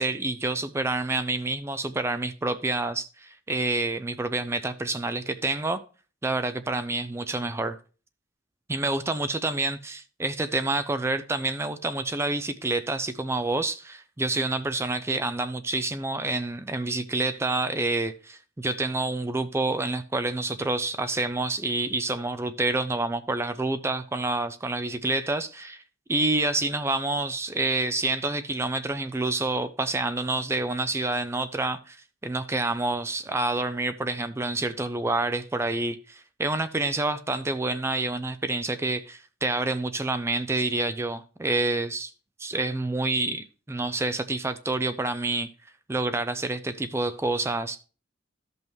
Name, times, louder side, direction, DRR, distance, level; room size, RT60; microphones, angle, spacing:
voice 1, 0.0-5.8 6.2-7.8 8.7-25.8 26.1-32.0 32.2-42.1 42.4-45.5 45.9-47.8, right 2 dB, 15° right, 0.4 m, -28 dB
13.5 x 5.4 x 3.0 m
head